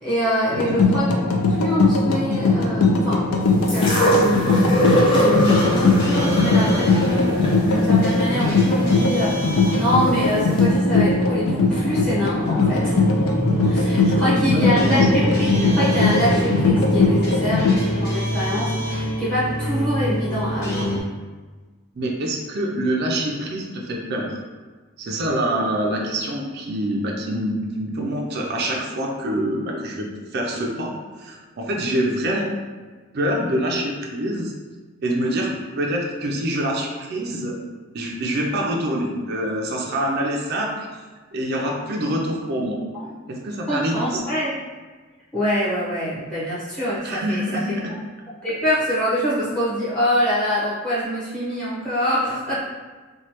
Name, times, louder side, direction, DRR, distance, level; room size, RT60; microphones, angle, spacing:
voice 1, 0.0-1.1 1.5-4.7 5.1-12.9 13.6-20.9 42.9-43.1 43.7-44.5 45.3-47.4 48.4-52.6, equal, 5° left, -10 dB, 0.8 m, -25 dB
sound 1, 0.6-17.8, left 3 dB, 80° left, 0.4 m, -20 dB
sound 2, 2.9-21.0, equal, 45° left, 0.8 m, -27 dB
sound 3, 3.7-9.7 10.6-10.7, equal, 25° left, 0.5 m, -23 dB
voice 2, 14.1-15.0 21.9-24.4 25.0-32.5 33.1-34.5 35.0-37.6 37.9-40.9 41.3-42.8 43.3-44.2 47.0-47.9, right 1 dB, 50° right, -1 dB, 0.4 m, -25 dB
3.1 x 2.2 x 2.9 m, 1.4 s
head